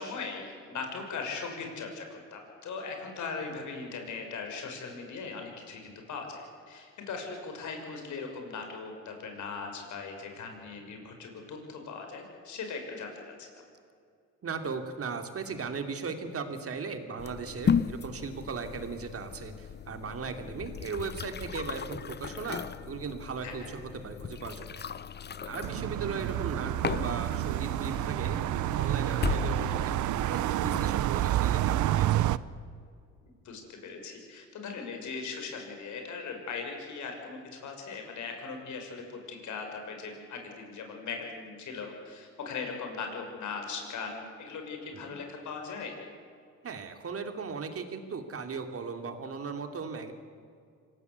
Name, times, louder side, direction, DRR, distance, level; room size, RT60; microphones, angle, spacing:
voice 1, 0.0-13.5 23.4-23.7 33.3-46.0, left 4 dB, 75° left, 3 dB, 6.2 m, -39 dB
voice 2, 14.4-24.8 25.5-32.3 45.1-45.2 46.6-50.1, right 5 dB, 50° right, 6 dB, 3.0 m, -37 dB
sound 1, 17.2-31.0, left 7 dB, 35° left, 0.8 m, -36 dB
sound 2, 25.6-32.4, right 13 dB, 75° right, 0.7 m, -29 dB
26.5 x 18.0 x 8.3 m, 2.3 s
cardioid pair, 90°, 30 cm